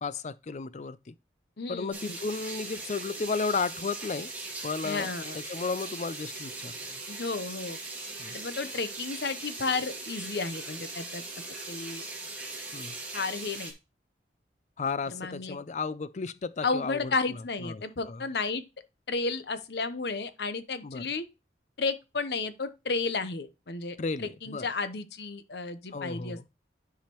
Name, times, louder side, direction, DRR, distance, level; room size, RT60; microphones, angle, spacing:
voice 1, 0.0-1.1 1.7-4.3 4.6-5.1 5.5-7.0 8.2-8.4 12.7-13.0 14.8-17.1 17.6-18.2 20.8-21.0 24.0-24.7 25.9-26.4, left 4 dB, 40° left, 0.4 m, -33 dB
voice 2, 1.6-2.2 4.8-5.4 7.1-7.8 8.3-11.2 11.7-12.1 13.1-13.7 15.1-15.6 16.6-18.6 19.1-21.2 21.8-26.5, left 4 dB, 70° left, 0.8 m, -32 dB
sound 1, 1.9-13.7, right 3 dB, 10° right, 2.2 m, -40 dB
10.5 x 4.9 x 3.0 m
head